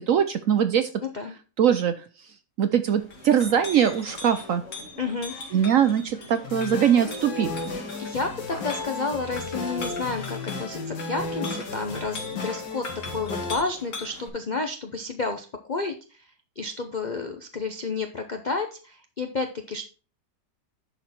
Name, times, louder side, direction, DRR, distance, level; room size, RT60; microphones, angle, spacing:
voice 1, 0.1-0.9 1.6-1.9 2.6-4.6 5.5-7.5, right 8 dB, 65° right, 10 dB, 0.8 m, -21 dB
voice 2, 1.0-1.3 5.0-5.3 8.0-12.9 13.1-16.3 16.6-19.8, left 3 dB, 60° left, 5 dB, 0.4 m, -31 dB
Chink clink, 3.0-14.3, left 3 dB, 45° left, 2.5 m, -40 dB
sound 1, 6.4-13.6, left 3 dB, 85° left, 2.3 m, -34 dB
11.0 x 4.5 x 4.2 m, 0.35 s
omnidirectional pair, 1.9 m